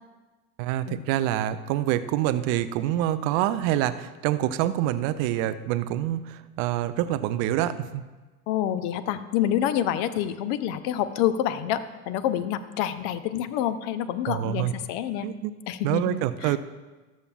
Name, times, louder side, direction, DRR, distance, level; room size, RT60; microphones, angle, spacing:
voice 1, 0.6-8.0 14.3-14.7 15.2-15.5 15.8-16.6, right 13 dB, 25° right, 13 dB, 0.4 m, -26 dB
voice 2, 8.5-15.3 15.7-16.6, left 11 dB, 35° left, 13 dB, 0.7 m, -27 dB
19.5 x 7.3 x 2.4 m, 1.2 s
figure-of-eight pair, 85°, 43 cm